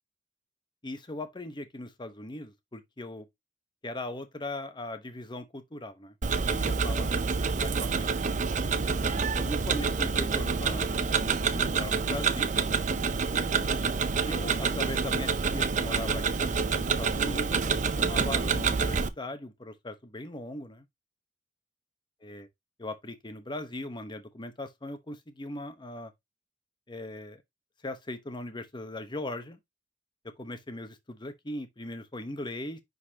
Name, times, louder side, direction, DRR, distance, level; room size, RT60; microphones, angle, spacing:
voice 1, 0.8-3.3 3.8-6.1 6.5-8.1 9.3-12.5 13.6-13.9 14.2-20.9 22.2-22.5 22.8-26.1 26.9-27.4 27.8-29.6 30.2-32.8, left 1 dB, 25° left, 1.0 m, -39 dB
Tick-tock, 6.2-19.1, right 5 dB, 45° right, 0.6 m, -27 dB
9.9 x 4.0 x 2.9 m
head